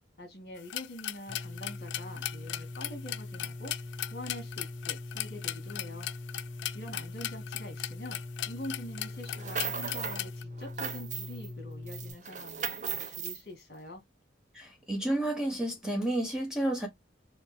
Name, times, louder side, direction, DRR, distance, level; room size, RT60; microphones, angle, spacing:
voice 1, 0.2-3.7 4.1-6.1 6.7-14.0, left 1 dB, 55° left, 1.8 m, -45 dB
sound 1, 0.6-10.4, left 13 dB, 75° left, 0.4 m, -37 dB
sound 2, 1.3-12.1, left 2 dB, 30° left, 1.8 m, -42 dB
sound 3, 9.2-10.2 10.6-11.5 11.9-13.4, right 6 dB, 40° right, 0.6 m, -37 dB
voice 2, 14.5-16.9, right 1 dB, 5° right, 0.8 m, -31 dB
4.4 x 2.2 x 3.2 m
head